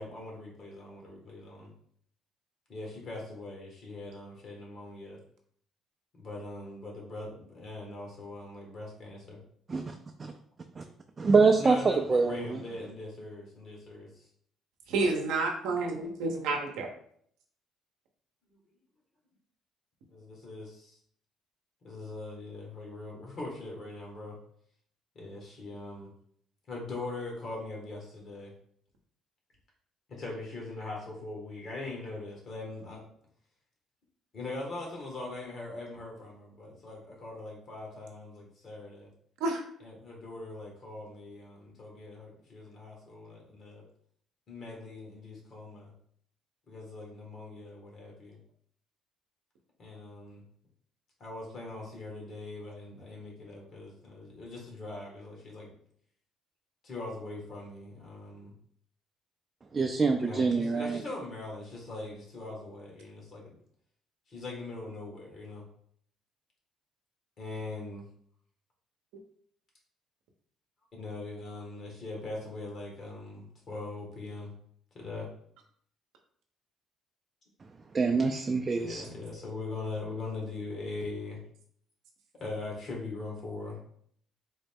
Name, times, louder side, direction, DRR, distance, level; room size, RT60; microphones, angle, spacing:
voice 1, 0.0-1.7 2.7-5.2 6.2-9.4 11.6-14.3 18.5-18.6 20.1-20.9 21.8-24.4 25.1-26.1 26.7-28.5 30.1-33.0 34.3-39.1 39.8-43.8 44.5-45.9 46.7-48.4 49.8-50.4 51.2-55.7 56.8-58.5 60.2-63.5 64.3-65.6 67.4-68.0 70.9-74.5 74.9-75.3 78.7-81.4 82.4-83.8, left 2 dB, 55° left, -2 dB, 1.5 m, -41 dB
voice 2, 11.2-12.6 59.7-61.0 77.9-79.0, right 4 dB, 35° right, 3 dB, 0.4 m, -25 dB
voice 3, 14.9-16.9 39.4-39.6, right 3 dB, 85° right, 3 dB, 0.7 m, -29 dB
3.8 x 2.1 x 3.5 m, 0.63 s
supercardioid pair, 75°, 0 cm